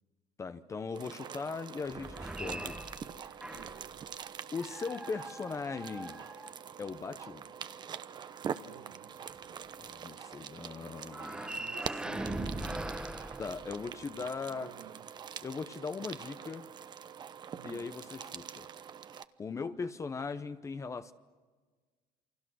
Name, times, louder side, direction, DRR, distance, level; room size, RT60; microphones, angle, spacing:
voice 1, 0.4-2.8 4.5-6.2 6.8-7.5 9.8-11.4 13.4-14.8 15.4-16.7 17.6-18.7 19.4-21.1, left 4 dB, 20° left, 0.8 m, -39 dB
sound 1, 0.9-19.2, right 8 dB, 35° right, 0.8 m, -45 dB
sound 2, 1.9-3.9 4.6-7.0 11.1-14.2, right 1 dB, 5° right, 1.0 m, -41 dB
voice 2, 3.4-4.0 8.6-9.6 10.1-10.2 11.4-12.8 13.7-15.1 17.5-17.9, right 10 dB, 85° right, 1.6 m, -52 dB
29.0 x 24.5 x 6.2 m
cardioid pair, 135°, 13 cm